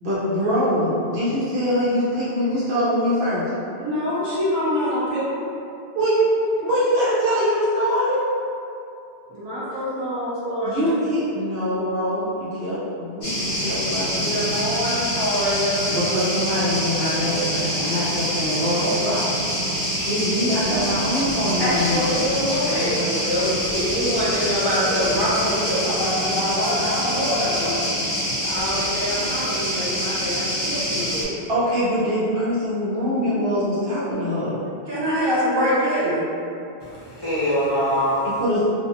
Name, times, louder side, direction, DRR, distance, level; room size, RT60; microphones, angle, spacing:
voice 1, 0.0-3.5 5.9-8.2 10.6-14.5 15.9-19.6 20.1-22.2 31.5-34.6 38.3-38.6, equal, 70° right, -11 dB, 0.9 m, -23 dB
voice 2, 3.8-5.4 9.3-11.0 14.1-15.8 22.7-27.8 28.4-31.3 34.9-36.3, equal, 25° right, -10 dB, 0.7 m, -25 dB
sound 1, 13.2-31.2, equal, 50° left, 1.0 m, -25 dB
voice 3, 21.6-23.0 37.1-38.3, left 1 dB, 25° left, -12 dB, 0.8 m, -23 dB
2.4 x 2.4 x 2.8 m, 2.6 s
omnidirectional pair, 1.1 m